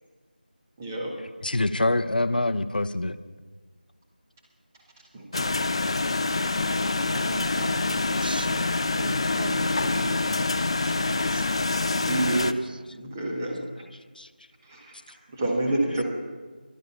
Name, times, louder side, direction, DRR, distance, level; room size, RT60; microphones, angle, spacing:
voice 1, 0.8-1.1 5.1-5.5 6.3-7.1 9.8-10.1 12.1-12.5 12.9-13.7 14.6-15.0 15.3-16.0, right 2 dB, 15° right, 1.6 m, -29 dB
voice 2, 1.4-3.2 14.2-14.3, left 2 dB, 60° left, 0.7 m, -25 dB
sound 1, 5.3-12.5, left 3 dB, 30° left, 0.4 m, -26 dB
voice 3, 7.1-10.1 10.4-10.7 11.3-11.4, right 2 dB, 65° right, 0.4 m, -39 dB
14.0 x 12.5 x 5.7 m
figure-of-eight pair, 165°, 5 cm